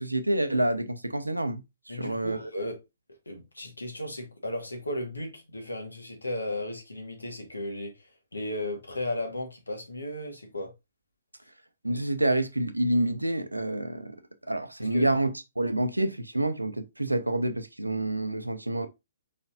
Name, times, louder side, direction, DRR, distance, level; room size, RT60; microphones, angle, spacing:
voice 1, 0.0-2.4 11.8-14.2 14.5-18.9, right 1 dB, 85° right, 0.7 m, -28 dB
voice 2, 1.9-2.8 3.2-10.7 14.8-15.1, left 1 dB, 75° left, 1.5 m, -35 dB
5.0 x 4.2 x 2.5 m
figure-of-eight pair, 125°, 0 cm